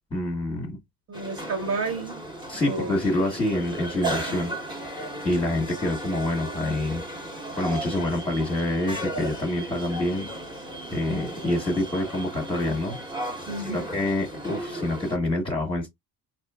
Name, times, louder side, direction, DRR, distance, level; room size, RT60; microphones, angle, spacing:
voice 1, 0.1-0.8 2.5-4.5 4.9-7.0 7.6-10.3 10.9-13.0 13.6-15.9, left 1 dB, 15° left, 1.1 m, -27 dB
sound 1, 1.1-15.2, right 1 dB, 10° right, 1.1 m, -35 dB
voice 2, 1.1-2.2 2.6-3.0 4.5-4.6 13.5-13.8, right 3 dB, 35° right, 1.4 m, -31 dB
4.3 x 2.8 x 2.3 m
cardioid pair, 130°, 39 cm